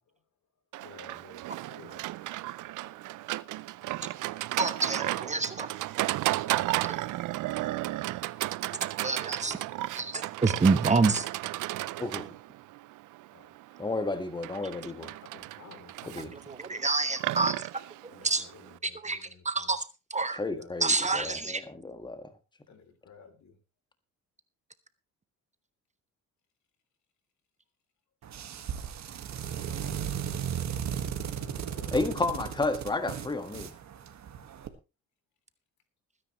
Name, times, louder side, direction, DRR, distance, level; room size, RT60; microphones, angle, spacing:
Livestock farm animals working animals, 0.7-18.8, right 17 dB, 85° right, 0.6 m, -34 dB
voice 1, 0.8-1.4 1.7-2.1 13.3-13.4 15.3-16.1 18.1-19.7 20.5-20.7 21.1-21.5 22.7-23.5 31.0-31.9, left 6 dB, 65° left, 8 dB, 3.3 m, -52 dB
voice 2, 4.6-5.7 6.9-7.0 9.0-9.6 9.9-11.2 16.8-17.5 18.2-18.4 18.8-19.8 20.1-20.4 20.8-21.6, right 3 dB, 25° right, 12 dB, 1.1 m, -27 dB
voice 3, 13.8-15.1 16.2-16.3 20.3-22.3 31.9-33.7, left 2 dB, 15° left, 9 dB, 1.6 m, -32 dB
sound 1, 28.2-34.7, right 8 dB, 65° right, 1.8 m, -36 dB
20.5 x 9.9 x 3.1 m, 0.29 s
cardioid pair, 90°, 30 cm